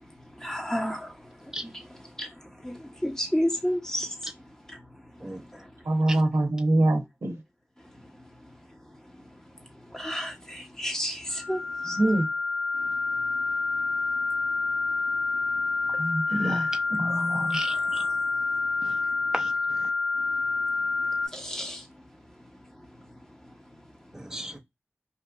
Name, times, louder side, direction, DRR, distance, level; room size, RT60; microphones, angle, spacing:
voice 1, 0.4-1.1 2.2-2.3 2.6-4.2 5.5-5.7 9.9-12.0 15.3-15.4 16.3-16.7 17.0-17.6 21.3-21.8, equal, 10° left, 0.9 m, -31 dB
voice 2, 5.9-7.4 11.9-12.3 16.0-16.7 17.0-17.6, right 1 dB, 85° right, 0.6 m, -25 dB
sound 1, 11.3-21.3, left 3 dB, 70° left, 0.8 m, -28 dB
voice 3, 17.5-18.0 18.8-19.0 19.3-19.9 24.1-24.6, right 1 dB, 10° right, 0.6 m, -36 dB
2.9 x 2.4 x 2.3 m
wide cardioid pair, 40°, 5 cm